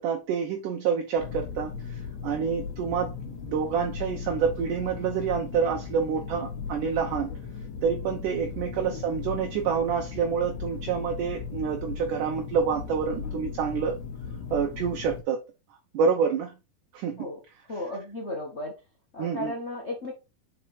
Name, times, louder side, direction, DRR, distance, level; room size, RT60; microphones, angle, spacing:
voice 1, 0.0-7.3 7.8-14.0 14.5-15.4 15.9-16.5 16.9-17.3 19.2-19.5, right 6 dB, 70° right, 2.3 m, -28 dB
sound 1, 1.2-15.2, left 6 dB, 60° left, 2.3 m, -37 dB
voice 2, 17.7-18.7 19.1-20.1, left 1 dB, 90° left, 0.6 m, -35 dB
5.7 x 4.8 x 4.3 m
omnidirectional pair, 4.2 m